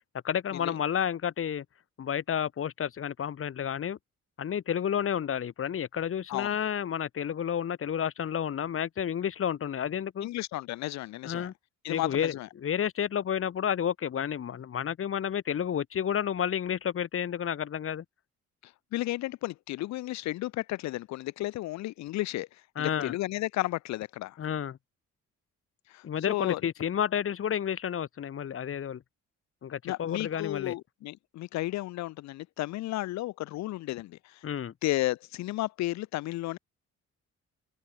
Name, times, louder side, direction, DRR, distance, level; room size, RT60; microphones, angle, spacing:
voice 1, 0.2-1.6 2.0-4.0 4.4-10.3 11.2-11.5 11.9-18.0 22.8-23.1 24.4-24.8 26.0-29.0 29.6-30.8 34.4-34.7, left 8 dB, 45° left, 1.2 m, -31 dB
voice 2, 10.2-11.5 11.8-12.5 18.6-22.5 22.8-24.4 25.9-26.6 29.8-34.4 34.8-36.6, left 16 dB, 65° left, 0.4 m, -33 dB
cardioid pair, 90°, 30 cm